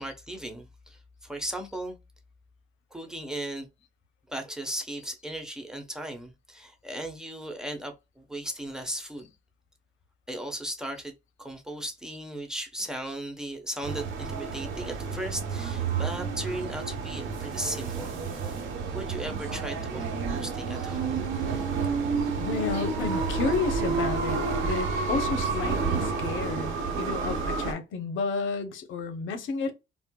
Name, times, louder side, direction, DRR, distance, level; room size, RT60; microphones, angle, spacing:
voice 1, 0.0-2.0 2.9-3.7 4.3-9.3 10.3-11.1 11.4-18.6 18.9-21.3, right 1 dB, 5° right, 1.0 m, -37 dB
sound 1, 13.8-27.7, right 4 dB, 85° right, 1.0 m, -30 dB
voice 2, 22.4-29.7, left 4 dB, 80° left, 0.7 m, -31 dB
4.4 x 2.0 x 2.2 m
cardioid pair, 90°, 20 cm